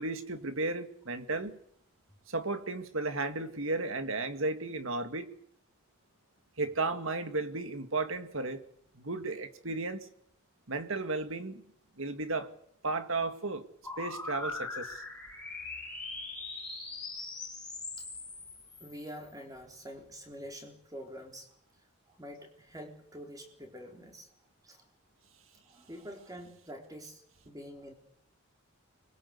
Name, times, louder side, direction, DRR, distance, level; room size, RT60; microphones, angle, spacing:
voice 1, 0.0-1.6 2.3-5.3 6.6-8.6 8.9-10.1 10.7-11.6 12.0-12.5 12.8-13.6 14.0-15.0, right 3 dB, 70° right, 1.9 m, -34 dB
sound 1, 13.8-19.3, left 3 dB, 5° left, 5.4 m, -41 dB
voice 2, 18.8-21.5 22.1-24.3 24.6-24.8 25.7-27.9, equal, 15° right, 4.1 m, -46 dB
24.5 x 22.0 x 8.2 m
head